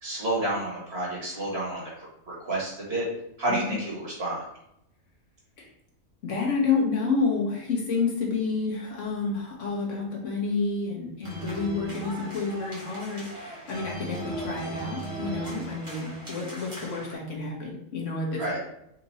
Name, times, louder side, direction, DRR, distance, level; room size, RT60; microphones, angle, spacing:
voice 1, 0.0-3.1 3.4-4.4 18.4-18.6, right 2 dB, 45° right, -4 dB, 1.7 m, -30 dB
voice 2, 6.2-18.6, left 4 dB, 60° left, -2 dB, 1.5 m, -29 dB
sound 1, 11.2-17.1, right 2 dB, 25° right, 1.2 m, -37 dB
4.5 x 2.6 x 4.1 m, 0.80 s
omnidirectional pair, 1.5 m